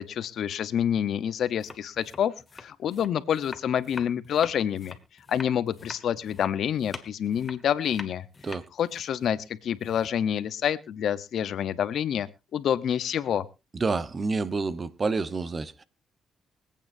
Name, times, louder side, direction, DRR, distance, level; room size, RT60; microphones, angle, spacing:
voice 1, 0.0-5.0 5.3-8.2 8.8-13.4, left 9 dB, 65° left, 0.8 m, -28 dB
sound 1, 1.5-10.4, left 3 dB, 25° left, 1.6 m, -45 dB
voice 2, 13.7-15.8, right 4 dB, 35° right, 0.9 m, -28 dB
24.0 x 8.7 x 2.6 m
cardioid pair, 90°, 0 cm